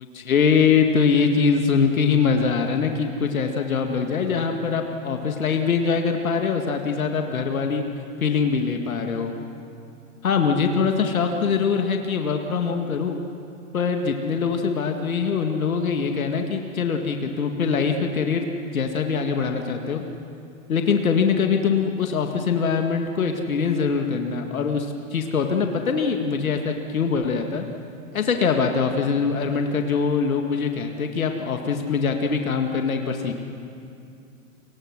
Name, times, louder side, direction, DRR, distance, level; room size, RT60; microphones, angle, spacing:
voice 1, 0.0-7.8 8.2-9.3 10.2-13.2 13.7-18.5 18.7-20.0 20.7-27.7 28.1-33.3, left 5 dB, 75° left, 4 dB, 2.0 m, -23 dB
29.5 x 24.0 x 6.4 m, 2.6 s
figure-of-eight pair, 105°, 42 cm